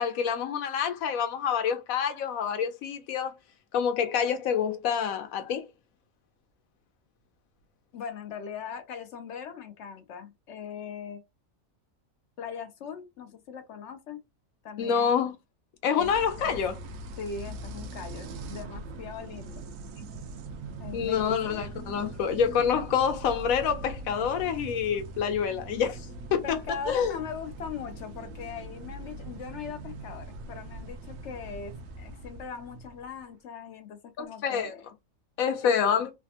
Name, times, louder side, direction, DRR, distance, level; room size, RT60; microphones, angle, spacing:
voice 1, 0.0-3.3 3.7-5.7 14.8-15.3 15.8-16.8 20.9-26.0 26.3-26.6 26.9-27.2 34.2-34.7 35.4-36.1, left 7 dB, 90° left, 1.1 m, -27 dB
voice 2, 7.9-11.2 12.4-14.2 14.6-15.1 15.9-16.1 16.4-16.6 17.2-19.6 20.8-21.6 26.4-34.8 35.6-36.0, left 6 dB, 70° left, 0.8 m, -40 dB
sound 1, 16.0-33.2, right 2 dB, 75° right, 0.9 m, -41 dB
3.3 x 2.1 x 2.7 m
omnidirectional pair, 1.4 m